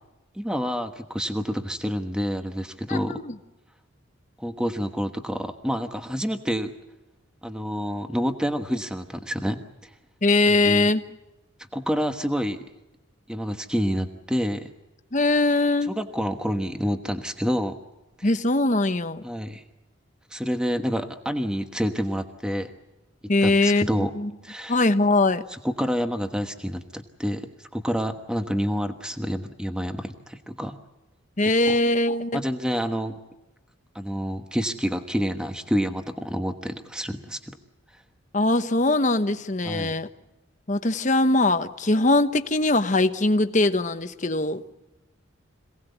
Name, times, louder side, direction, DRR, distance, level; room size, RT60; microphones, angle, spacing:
voice 1, 0.3-3.2 4.4-6.7 7.4-10.0 10.4-10.9 11.6-12.6 13.3-14.7 15.8-17.7 18.2-18.3 19.2-19.6 20.3-22.7 23.4-24.1 24.4-24.8 25.5-30.8 31.6-31.8 32.3-33.2 33.9-37.5 39.6-39.9, equal, 5° right, 6 dB, 1.2 m, -28 dB
voice 2, 2.9-3.2 10.2-11.0 15.1-15.9 18.2-19.2 23.3-24.3 24.7-25.4 31.4-32.4 38.3-40.1 40.7-44.6, left 2 dB, 35° left, 9 dB, 1.1 m, -21 dB
26.5 x 18.5 x 8.1 m, 1.1 s
head